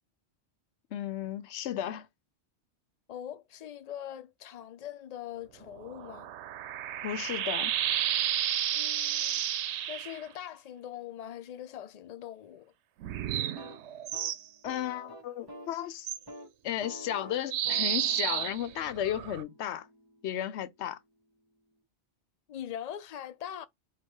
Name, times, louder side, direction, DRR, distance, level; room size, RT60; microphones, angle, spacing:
voice 1, 0.9-2.1 7.0-7.7 14.6-16.1 16.6-19.9 20.2-21.0, left 11 dB, 80° left, 0.9 m, -34 dB
voice 2, 3.1-6.3 8.7-9.4 9.9-12.7 22.5-23.7, left 10 dB, 55° left, 0.4 m, -42 dB
sound 1, 5.7-10.2 13.0-14.4 16.0-16.2 17.5-19.4, right 11 dB, 80° right, 0.8 m, -31 dB
sound 2, 13.4-15.8 16.1-16.5 16.8-20.7, equal, 20° right, 1.0 m, -49 dB
4.5 x 2.3 x 4.5 m
omnidirectional pair, 1.1 m